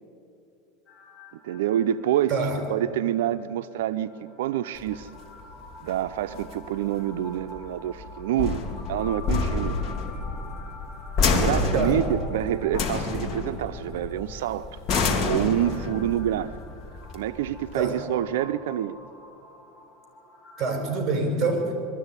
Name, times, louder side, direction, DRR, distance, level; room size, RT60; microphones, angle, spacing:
sound 1, 0.9-20.8, left 3 dB, 15° left, 6.1 m, -47 dB
voice 1, 1.4-2.3 2.7-5.1 5.8-8.6 8.9-9.8 11.3-14.8 15.3-16.5 17.1-19.0, right 11 dB, 85° right, 10 dB, 0.5 m, -27 dB
sound 2, 4.8-17.8, left 4 dB, 40° left, 2.7 m, -29 dB
voice 2, 20.6-21.7, right 3 dB, 25° right, 3 dB, 5.8 m, -25 dB
21.5 x 13.5 x 9.7 m, 2.6 s
supercardioid pair, 140°, 0 cm